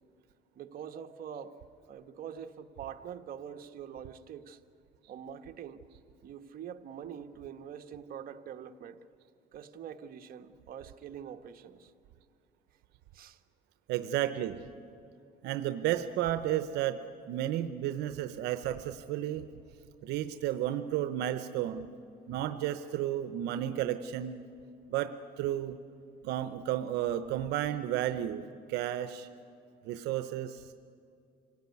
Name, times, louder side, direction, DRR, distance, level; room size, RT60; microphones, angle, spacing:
voice 1, 0.6-1.5 1.9-4.6 5.1-5.8 6.2-9.0 9.5-11.9 13.1-13.4, right 8 dB, 60° right, 6 dB, 1.2 m, -44 dB
voice 2, 13.9-14.6 15.4-17.0 17.3-19.5 20.0-21.9 22.3-24.4 24.9-25.8 26.2-29.3 29.8-30.7, right 12 dB, 85° right, 10 dB, 0.8 m, -32 dB
26.5 x 17.0 x 9.5 m, 2.5 s
cardioid pair, 110°, 17 cm